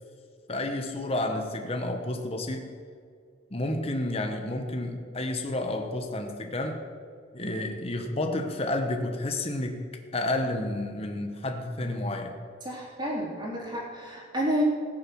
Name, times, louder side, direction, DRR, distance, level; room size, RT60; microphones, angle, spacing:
voice 1, 0.5-2.7 3.5-6.8 7.3-12.4, left 1 dB, 30° left, 4 dB, 1.1 m, -30 dB
voice 2, 12.6-14.6, equal, 25° right, -4 dB, 3.4 m, -30 dB
19.5 x 6.9 x 6.2 m, 2.2 s
head